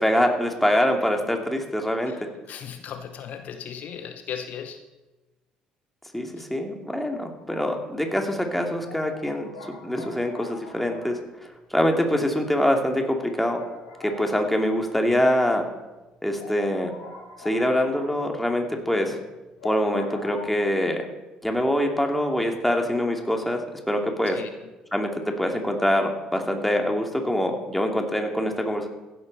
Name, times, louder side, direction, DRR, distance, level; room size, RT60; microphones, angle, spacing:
voice 1, 0.0-2.1 6.1-9.5 9.8-11.2 11.7-13.6 14.0-15.6 16.2-16.9 17.4-19.2 19.6-21.0 21.4-24.4 24.9-25.1 25.4-28.9, equal, 5° left, 3 dB, 2.7 m, -24 dB
voice 2, 2.5-4.8 15.1-15.2 24.3-24.5, left 8 dB, 60° left, 8 dB, 0.9 m, -36 dB
sound 1, 7.4-7.8 8.1-8.2 8.8-15.2 15.6-15.7 15.9-16.0 16.3-20.4, left 3 dB, 80° left, 3.8 m, -44 dB
15.5 x 12.0 x 4.2 m, 1.1 s
hypercardioid pair, 55°, 3 cm